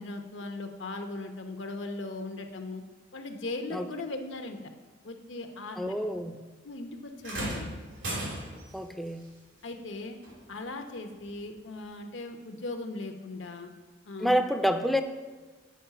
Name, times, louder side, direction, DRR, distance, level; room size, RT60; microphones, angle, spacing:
voice 1, 0.0-2.8 3.1-4.6 5.0-5.9 6.6-7.7 9.6-10.2 10.5-13.7 14.0-14.4, left 2 dB, 80° left, 5 dB, 0.8 m, -38 dB
voice 2, 5.8-6.4 8.7-9.2 14.2-15.0, equal, ahead, 7 dB, 0.4 m, -28 dB
sound 1, 7.2-8.8 10.2-10.4 11.3-11.4, right 1 dB, 85° right, 2.9 m, -35 dB
8.5 x 4.7 x 5.7 m, 1.3 s
head